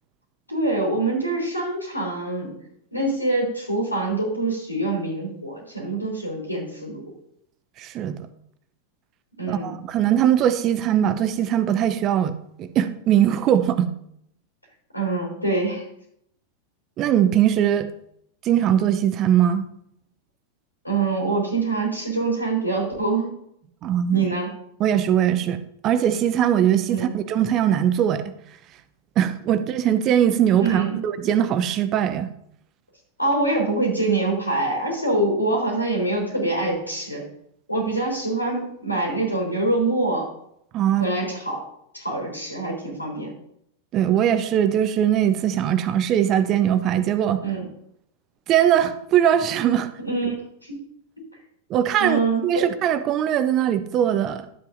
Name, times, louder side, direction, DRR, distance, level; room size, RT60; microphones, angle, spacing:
voice 1, 0.5-2.6 2.9-7.1 9.4-9.8 14.9-15.8 20.8-23.3 24.1-24.5 26.9-27.1 30.6-31.0 33.2-37.2 37.7-40.3 41.0-41.6 41.9-43.3 47.4-47.6 50.0-50.4 50.6-50.8 52.0-52.4, right 2 dB, 85° left, 0 dB, 3.5 m, -25 dB
voice 2, 7.8-8.3 9.5-13.9 17.0-17.9 18.4-19.7 23.8-24.3 24.8-28.2 29.2-32.3 40.7-41.1 43.9-47.4 48.5-49.9 51.7-54.5, right 10 dB, 35° right, 12 dB, 0.6 m, -21 dB
11.5 x 8.1 x 2.6 m, 0.73 s
figure-of-eight pair, 90°, 0 cm